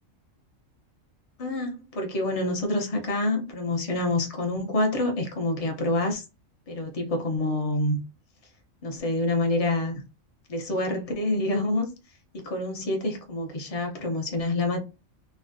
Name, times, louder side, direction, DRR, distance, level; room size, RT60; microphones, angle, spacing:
voice 1, 1.4-6.2 6.7-8.0 8.8-10.0 10.5-11.9 12.3-14.8, left 2 dB, 50° left, 0.4 m, -27 dB
3.2 x 2.1 x 2.4 m
omnidirectional pair, 1.4 m